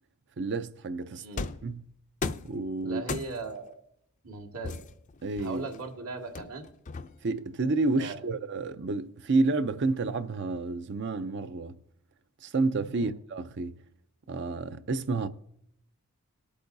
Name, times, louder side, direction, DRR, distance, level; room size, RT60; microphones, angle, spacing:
voice 1, 0.4-1.9 2.4-3.0 5.2-5.6 7.2-11.7 12.4-13.8 14.3-15.3, right 3 dB, 55° right, 0.6 m, -30 dB
sound 1, 1.4-1.7 2.2-2.6 3.1-3.6 4.6-5.8 6.4-7.4, left 4 dB, 35° left, 0.4 m, -36 dB
voice 2, 2.8-3.8 4.2-4.8 5.4-6.7 8.0-8.2 12.8-13.1, right 3 dB, 75° right, 1.9 m, -38 dB
19.5 x 8.4 x 2.7 m
head